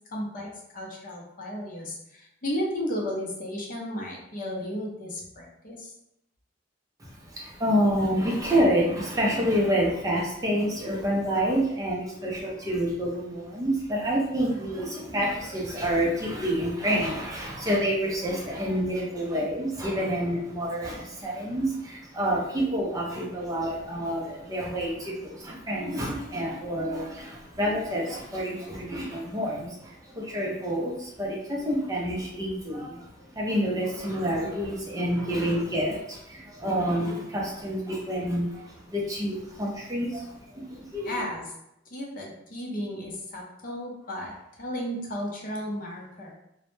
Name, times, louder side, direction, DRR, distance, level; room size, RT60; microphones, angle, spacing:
voice 1, 0.1-5.9 41.0-41.5 41.9-46.3, equal, 45° left, -2 dB, 0.6 m, -34 dB
voice 2, 7.0-41.1, equal, 20° right, -3 dB, 0.4 m, -28 dB
2.0 x 2.0 x 3.0 m, 0.81 s
head